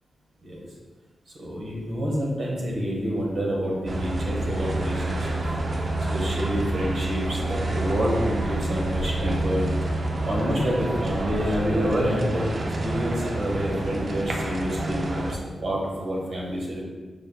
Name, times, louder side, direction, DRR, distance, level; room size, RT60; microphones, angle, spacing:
voice 1, 1.4-5.3 6.1-9.7 10.2-12.4 12.8-16.8, equal, 65° right, -3 dB, 1.2 m, -28 dB
sound 1, 3.9-15.4, right 1 dB, 45° right, 0.4 m, -28 dB
5.3 x 2.2 x 3.9 m, 1.4 s
wide cardioid pair, 120°, 0 cm